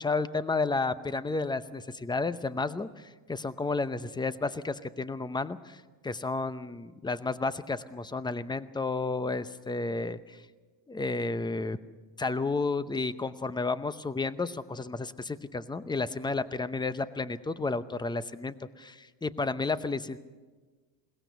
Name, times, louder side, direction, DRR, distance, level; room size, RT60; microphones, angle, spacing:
voice 1, 0.0-10.4 10.9-11.8 12.2-20.2, left 3 dB, 10° left, 14 dB, 0.7 m, -32 dB
21.0 x 18.5 x 6.9 m, 1.3 s
cardioid pair, 105°, 49 cm